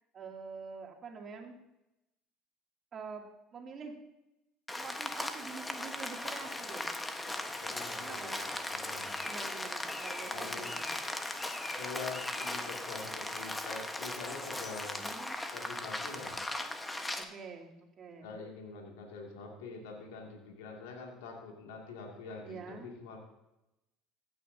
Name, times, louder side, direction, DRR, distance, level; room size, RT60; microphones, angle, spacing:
voice 1, 0.1-1.6 2.9-3.9 4.7-6.9 8.0-8.5 9.3-11.0 14.9-15.4 17.1-18.3 22.4-22.9, right 5 dB, 40° right, 1 dB, 2.6 m, -46 dB
Rain, 4.7-17.2, left 1 dB, 15° left, 1.2 m, -38 dB
voice 2, 7.3-8.5 8.7-9.2 10.3-10.7 11.8-15.0 15.5-16.4 18.2-23.2, left 4 dB, 80° left, 0 dB, 2.3 m, -45 dB
15.5 x 9.3 x 2.8 m, 0.91 s
hypercardioid pair, 75°, 0 cm